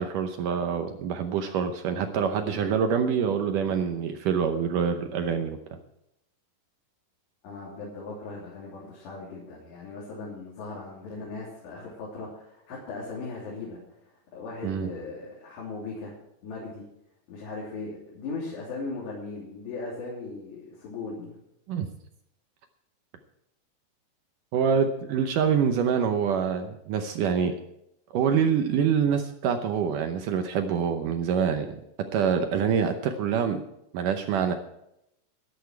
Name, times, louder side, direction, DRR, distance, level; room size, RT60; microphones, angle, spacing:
voice 1, 0.0-5.6 14.6-14.9 21.7-21.9 24.5-27.6 28.1-31.8 32.1-33.6 33.9-34.5, right 7 dB, 75° right, 6 dB, 2.0 m, -25 dB
voice 2, 7.4-14.0 14.3-16.1 16.4-16.9 17.3-21.3, left 3 dB, 90° left, -5 dB, 5.3 m, -38 dB
13.0 x 13.0 x 4.6 m, 0.80 s
omnidirectional pair, 4.8 m